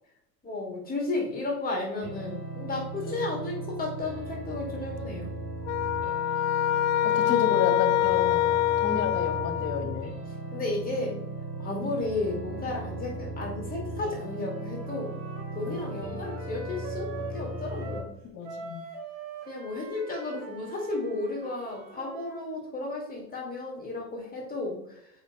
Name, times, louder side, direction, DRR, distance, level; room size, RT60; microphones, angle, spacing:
voice 1, 0.4-5.3 10.5-11.2 11.6-15.2 15.5-18.1 19.5-25.1, left 2 dB, 20° left, -1 dB, 2.4 m, -33 dB
sound 1, 2.0-18.0, right 1 dB, 25° right, 2.6 m, -37 dB
sound 2, 5.7-10.1, left 13 dB, 55° left, 0.6 m, -25 dB
voice 2, 7.0-8.5 8.8-10.1 15.7-15.9 18.3-18.8, left 7 dB, 40° left, 4 dB, 2.0 m, -31 dB
Wind instrument woodwind instrument, 14.3-18.1 18.4-22.4, right 4 dB, 55° right, 2.4 m, -43 dB
7.9 x 5.0 x 3.2 m, 0.76 s
hypercardioid pair, 90°, 48 cm